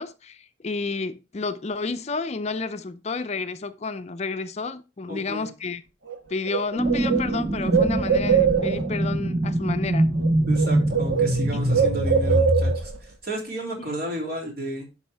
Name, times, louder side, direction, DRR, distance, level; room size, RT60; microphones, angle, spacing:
voice 1, 0.0-5.8 6.3-10.1 11.5-11.7 13.8-13.9, left 4 dB, 35° left, 0.5 m, -31 dB
voice 2, 5.1-5.5 10.5-14.9, right 1 dB, 55° right, 3.0 m, -33 dB
Bird, 6.1-6.2 6.5-9.0 10.0-10.3 10.5-13.0, right 7 dB, 80° right, 1.4 m, -23 dB
sound 1, 6.8-12.7, right 1 dB, 20° right, 0.9 m, -24 dB
10.5 x 5.6 x 3.4 m
head